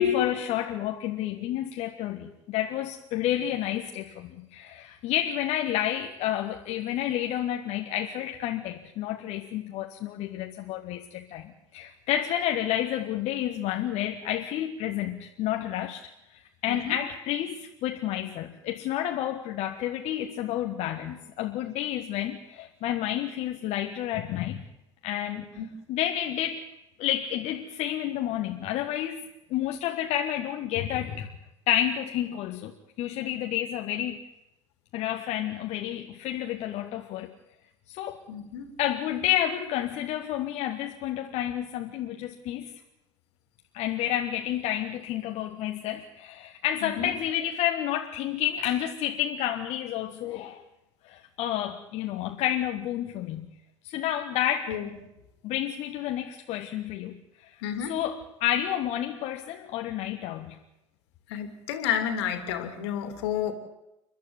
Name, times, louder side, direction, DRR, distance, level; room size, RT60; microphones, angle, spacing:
voice 1, 0.0-16.0 16.6-24.6 25.0-25.5 25.9-26.7 27.0-31.3 31.7-34.2 34.9-37.3 37.9-38.2 38.8-42.8 43.7-50.6 51.0-53.5 53.8-54.8 55.4-57.2 57.4-57.5 57.9-60.5, left 11 dB, 45° left, 4 dB, 1.5 m, -30 dB
voice 2, 38.3-38.7 46.8-47.1 54.7-54.9 57.6-58.0 61.3-63.5, left 9 dB, 60° left, 8 dB, 2.9 m, -29 dB
29.5 x 12.0 x 9.2 m, 0.92 s
figure-of-eight pair, 70°, 16 cm